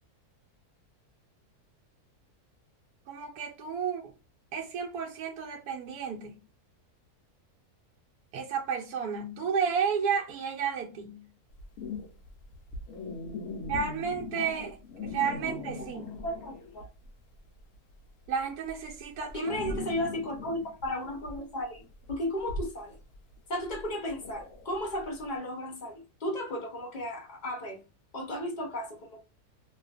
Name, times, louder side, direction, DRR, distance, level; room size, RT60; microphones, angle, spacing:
voice 1, 3.1-4.1 4.5-6.4 8.3-11.2 13.7-14.8 15.0-16.2 18.3-19.6, right 6 dB, 85° right, 1.1 m, -32 dB
sound 1, 11.5-17.1 17.4-25.2, left 3 dB, 65° left, 0.9 m, -40 dB
voice 2, 16.2-16.8 19.3-21.8 22.1-23.0 23.5-27.8 28.1-29.2, left 1 dB, 35° left, 0.8 m, -34 dB
2.7 x 2.4 x 2.4 m
omnidirectional pair, 1.6 m